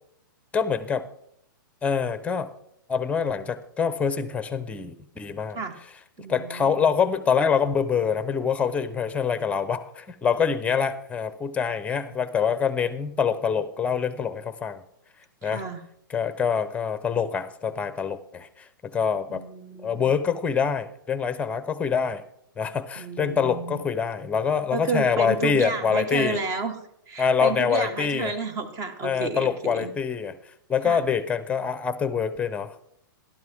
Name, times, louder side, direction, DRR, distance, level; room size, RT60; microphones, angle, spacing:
voice 1, 0.5-1.0 1.8-2.5 2.9-5.6 6.3-14.8 15.4-15.6 16.1-19.4 19.8-22.2 22.6-26.4 27.2-28.3 29.0-30.4 30.7-32.8, left 6 dB, 10° left, 13 dB, 0.8 m, -25 dB
voice 2, 6.2-6.8 15.4-15.8 19.3-20.1 23.0-23.8 24.7-26.8 27.1-29.9 30.8-31.0, right 3 dB, 30° right, 9 dB, 1.5 m, -31 dB
12.5 x 12.0 x 3.6 m, 0.72 s
hypercardioid pair, 130°, 11 cm